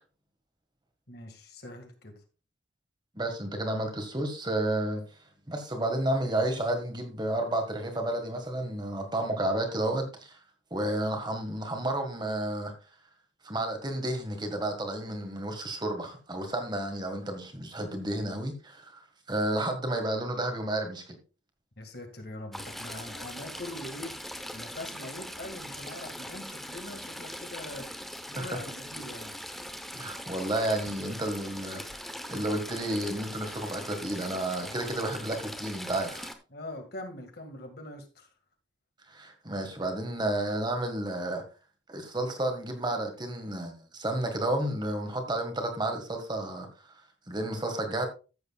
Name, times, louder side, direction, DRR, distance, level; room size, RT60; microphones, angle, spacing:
voice 1, 1.1-2.2 21.8-24.2 24.5-27.9 28.3-29.4 36.5-38.3, left 1 dB, 50° left, 2.0 m, -42 dB
voice 2, 3.2-5.0 5.5-10.4 10.7-12.7 13.4-19.0 19.3-21.2 28.4-28.6 29.9-32.0 32.3-36.3 39.1-41.4 41.9-46.7 47.3-48.1, right 1 dB, 20° right, 1.7 m, -31 dB
Stream / Trickle dribble, 22.5-36.4, equal, ahead, 0.9 m, -41 dB
14.0 x 8.0 x 2.4 m
head